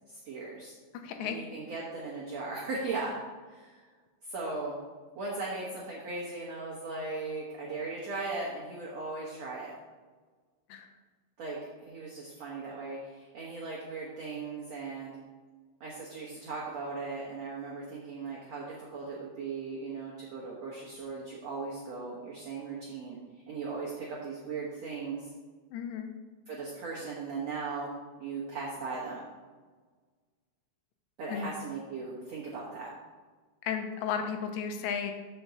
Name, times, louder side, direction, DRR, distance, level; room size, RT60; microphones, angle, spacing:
voice 1, 0.1-0.7 1.2-3.1 3.5-3.9 4.2-4.8 5.2-9.7 11.4-15.2 15.8-23.2 23.5-25.3 26.5-29.2 31.2-32.9, right 3 dB, 85° right, -5 dB, 1.4 m, -38 dB
voice 2, 0.9-1.4 10.7-10.9 25.7-26.1 31.3-31.5 33.6-35.1, left 7 dB, 85° left, 6 dB, 2.8 m, -34 dB
5.9 x 5.3 x 6.9 m, 1.4 s
omnidirectional pair, 5.0 m